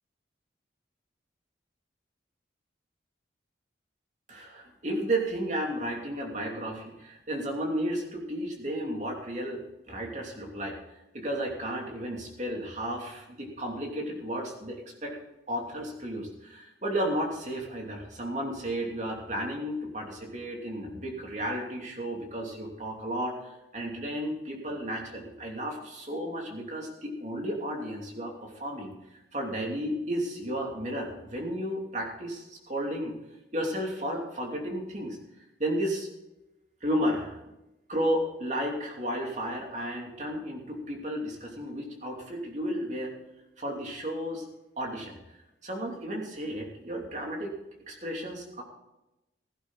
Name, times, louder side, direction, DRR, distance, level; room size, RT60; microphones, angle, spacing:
voice 1, 4.3-10.8 11.1-15.2 15.5-28.9 29.3-33.1 33.5-35.2 35.6-36.1 36.8-37.4 37.9-43.1 43.6-44.4 44.8-45.1 45.6-47.5 47.9-48.6, equal, 40° right, 0 dB, 2.8 m, -33 dB
16.0 x 11.0 x 4.1 m, 0.94 s
head